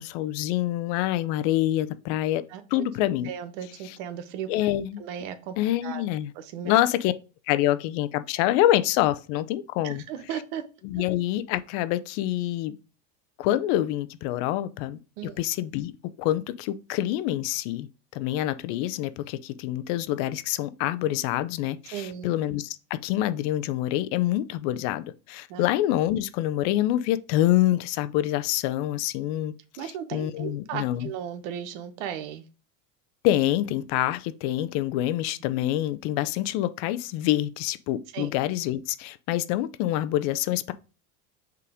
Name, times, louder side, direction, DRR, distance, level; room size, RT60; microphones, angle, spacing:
voice 1, 0.0-2.4 2.7-3.3 3.8-4.0 4.5-5.0 5.6-6.3 6.6-7.1 7.5-10.0 10.8-12.8 13.4-15.0 15.4-15.9 16.2-17.9 18.1-22.8 23.0-29.5 29.8-31.1 33.2-40.7, left 14 dB, 65° left, 0.7 m, -26 dB
voice 2, 2.5-2.8 3.2-4.5 5.0-5.5 5.8-6.0 6.3-6.7 9.8-10.6 15.2-15.4 21.9-22.3 25.5-25.6 29.8-32.4 38.1-38.3, right 9 dB, 70° right, 1.1 m, -36 dB
5.6 x 3.9 x 4.8 m
supercardioid pair, 110°, 38 cm